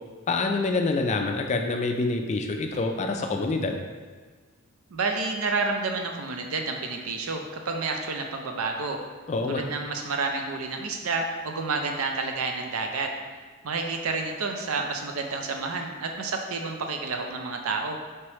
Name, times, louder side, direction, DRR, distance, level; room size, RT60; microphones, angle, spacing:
voice 1, 0.3-3.8 9.3-9.6, left 3 dB, 35° left, 4 dB, 0.3 m, -26 dB
voice 2, 4.9-9.0 9.5-13.1 13.6-18.0, right 3 dB, 80° right, 3 dB, 0.5 m, -29 dB
4.5 x 3.1 x 3.0 m, 1.4 s
head